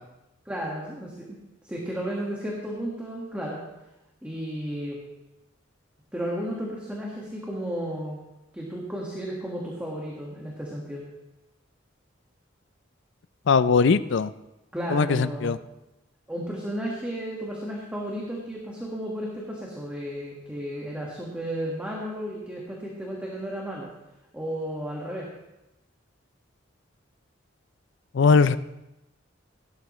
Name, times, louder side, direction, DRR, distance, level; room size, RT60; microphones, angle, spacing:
voice 1, 0.4-1.4 1.6-3.6 4.2-5.0 6.1-8.2 8.5-11.0 14.7-15.6 16.3-23.9 24.3-25.3, equal, 5° right, -3 dB, 1.7 m, -33 dB
voice 2, 13.5-14.3 14.9-15.6 28.1-28.6, left 5 dB, 60° left, 15 dB, 0.4 m, -20 dB
17.5 x 12.0 x 3.2 m, 0.95 s
head